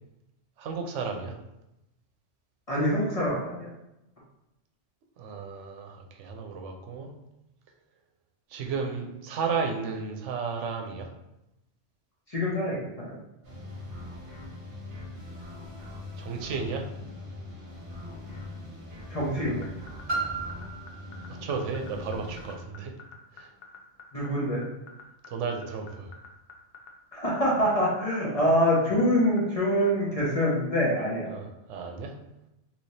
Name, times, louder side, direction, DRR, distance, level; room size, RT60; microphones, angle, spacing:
voice 1, 0.6-1.4 5.2-7.1 8.5-11.1 16.2-16.9 21.0-21.1 21.4-22.9 23.3-23.5 25.3-26.1 31.3-32.1, right 5 dB, 80° right, 3 dB, 0.9 m, -33 dB
voice 2, 2.7-3.7 12.3-13.2 19.1-19.7 24.1-24.6 27.1-31.3, equal, 35° left, -6 dB, 0.8 m, -25 dB
sound 1, 13.4-22.5, left 2 dB, 45° right, 1.2 m, -41 dB
sound 2, 19.4-29.9, left 6 dB, 60° left, 0.7 m, -46 dB
Piano, 20.1-25.5 26.2-26.3, right 3 dB, 25° right, 1.0 m, -38 dB
3.2 x 3.0 x 2.7 m, 0.91 s
omnidirectional pair, 1.2 m